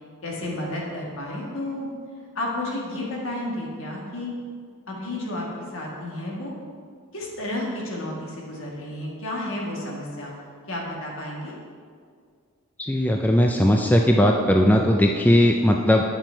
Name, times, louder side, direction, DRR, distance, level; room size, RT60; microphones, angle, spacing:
voice 1, 0.2-1.9 2.3-4.3 4.9-5.5 5.7-6.5 7.1-10.3 10.7-11.5, left 1 dB, 60° left, -2 dB, 1.7 m, -31 dB
voice 2, 12.8-16.0, left 1 dB, 5° left, 2 dB, 0.3 m, -18 dB
8.7 x 5.9 x 4.5 m, 2.1 s
head